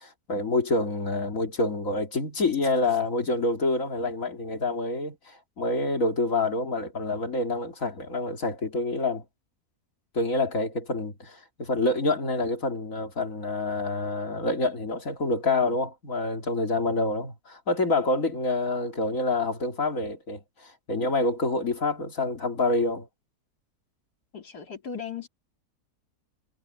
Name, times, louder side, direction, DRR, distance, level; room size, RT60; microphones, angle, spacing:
voice 1, 0.0-9.2 10.1-23.1, left 2 dB, 55° left, 3.1 m, -27 dB
voice 2, 24.3-25.3, left 7 dB, 75° left, 3.3 m, -37 dB
omnidirectional pair, 1.7 m